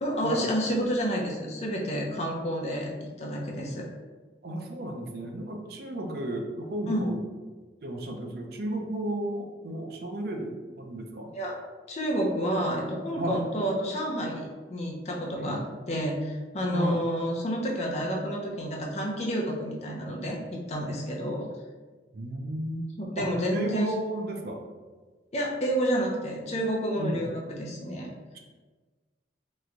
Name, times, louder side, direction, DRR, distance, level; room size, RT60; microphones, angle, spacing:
voice 1, 0.0-3.9 6.9-7.1 11.3-11.6 11.9-15.6 15.9-21.4 23.0-23.9 25.3-28.1, equal, 35° left, -2 dB, 0.6 m, -29 dB
voice 2, 4.4-7.2 7.8-11.3 13.1-13.4 15.3-15.6 16.7-17.0 22.1-22.9 23.2-24.6 27.0-27.2, right 1 dB, 55° right, 3 dB, 0.4 m, -33 dB
3.0 x 2.2 x 3.7 m, 1.3 s
head